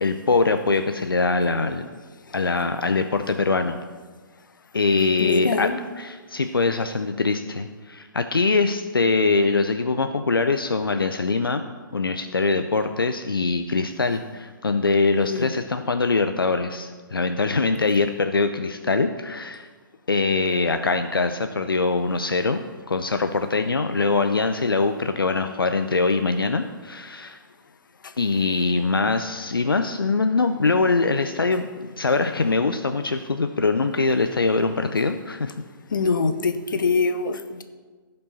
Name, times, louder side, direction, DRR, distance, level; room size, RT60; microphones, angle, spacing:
voice 1, 0.0-1.8 2.3-3.8 4.7-5.7 6.0-11.6 11.9-19.7 20.1-22.6 22.9-27.4 28.2-35.5, left 3 dB, 80° left, 8 dB, 0.6 m, -23 dB
voice 2, 5.2-5.8 15.2-15.5 28.0-28.1 35.9-37.6, left 4 dB, 65° left, 10 dB, 0.9 m, -24 dB
16.0 x 5.4 x 4.1 m, 1.4 s
figure-of-eight pair, 125°, 12 cm